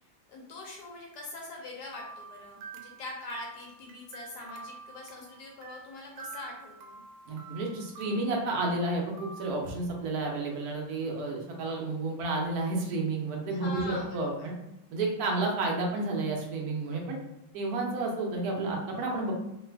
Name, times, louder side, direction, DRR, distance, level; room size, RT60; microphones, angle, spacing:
voice 1, 0.3-7.0 13.5-14.5 15.2-15.6, left 2 dB, 70° left, 0 dB, 1.1 m, -43 dB
sound 1, 1.9-9.5, right 3 dB, 85° right, 1.4 m, -48 dB
voice 2, 7.3-14.5 14.9-17.2 17.5-19.3, right 2 dB, 65° right, 0 dB, 1.1 m, -31 dB
3.3 x 2.3 x 3.3 m, 0.88 s
omnidirectional pair, 2.1 m